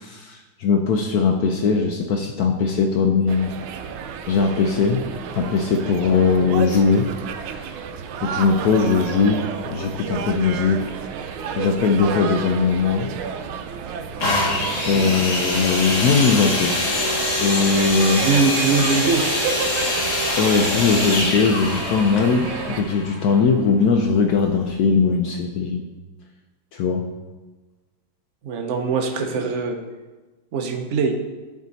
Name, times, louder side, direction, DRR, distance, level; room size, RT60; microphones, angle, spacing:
voice 1, 0.0-3.5 4.3-5.1 5.3-7.1 7.5-7.8 8.2-10.8 11.6-13.1 14.8-16.8 17.4-18.3 20.4-25.8 26.7-27.1, left 5 dB, 80° left, 4 dB, 0.8 m, -20 dB
sound 1, 3.3-22.8, right 6 dB, 90° right, 1.5 m, -31 dB
sound 2, 14.2-23.9 24.6-24.7, left 1 dB, 55° left, 2.0 m, -24 dB
voice 2, 18.2-19.2 28.4-29.8 30.5-31.1, right 4 dB, 65° right, 4 dB, 0.7 m, -22 dB
11.0 x 4.9 x 4.0 m, 1.2 s
omnidirectional pair, 2.2 m